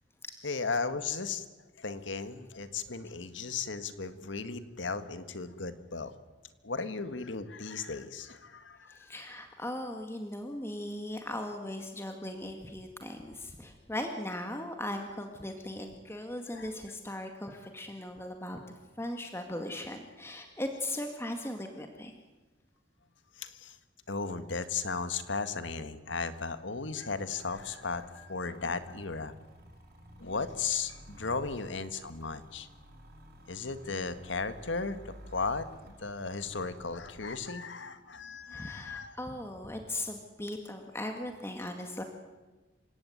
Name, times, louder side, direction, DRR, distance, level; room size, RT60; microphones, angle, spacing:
voice 1, 0.4-1.4 1.8-6.1 6.6-9.0 16.5-16.7 23.4-23.8 24.1-29.3 30.2-32.7 33.5-39.2, left 4 dB, 80° left, 11 dB, 1.7 m, -36 dB
voice 2, 8.9-18.6 19.0-22.1 38.5-42.0, left 1 dB, 15° left, 4 dB, 2.0 m, -38 dB
sound 1, 26.4-26.5 26.8-37.5, equal, 55° right, 6.4 m, -53 dB
27.5 x 17.0 x 9.4 m, 1.2 s
head